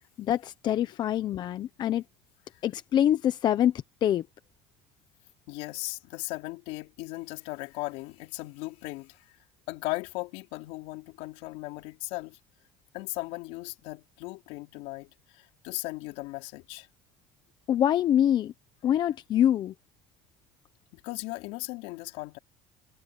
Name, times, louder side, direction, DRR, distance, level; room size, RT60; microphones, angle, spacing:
voice 1, 0.2-2.0 2.6-3.7 4.0-4.3 17.7-18.5 18.8-19.7, left 10 dB, 40° left, 0.9 m, -25 dB
voice 2, 5.5-9.4 9.7-12.4 12.9-16.9 20.9-22.4, left 22 dB, 75° left, 4.4 m, -37 dB
cardioid pair, 140°, 11 cm